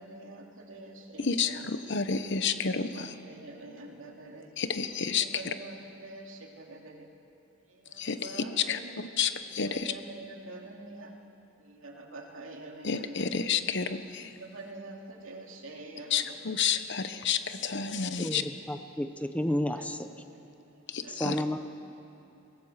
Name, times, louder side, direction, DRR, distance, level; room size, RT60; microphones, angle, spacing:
voice 1, 0.0-1.7 2.6-4.5 5.2-7.1 7.7-9.1 9.7-11.1 11.6-13.3 14.4-16.3 17.6-18.1 19.7-19.9 21.0-21.5, right 2 dB, 75° right, 1 dB, 2.7 m, -46 dB
voice 2, 1.2-3.1 4.6-5.5 8.0-9.9 12.8-14.3 16.1-18.4 20.9-21.3, left 6 dB, 60° left, 10 dB, 1.1 m, -30 dB
voice 3, 18.2-20.1 21.1-21.6, left 1 dB, 5° left, 8 dB, 0.8 m, -31 dB
24.5 x 17.5 x 7.4 m, 2.8 s
head